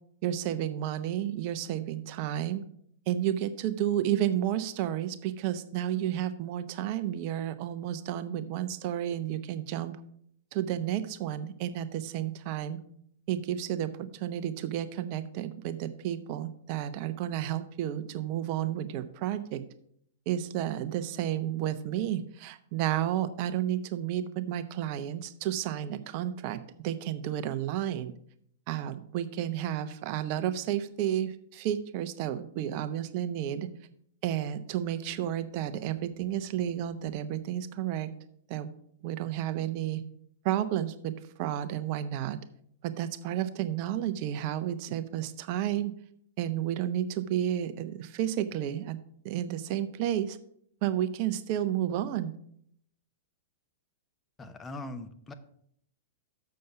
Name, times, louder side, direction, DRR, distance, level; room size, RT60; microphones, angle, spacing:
voice 1, 0.2-2.6 3.1-9.9 10.5-12.8 13.3-19.6 20.3-28.1 28.7-33.7 34.2-38.1 38.5-38.7 39.0-40.0 40.4-42.4 42.8-45.9 46.4-49.0 49.2-50.4 50.8-52.3, right 11 dB, 45° right, 12 dB, 0.7 m, -31 dB
voice 2, 54.4-55.3, left 2 dB, 15° left, 9 dB, 0.8 m, -41 dB
6.9 x 6.4 x 5.8 m, 0.68 s
figure-of-eight pair, 105°, 0 cm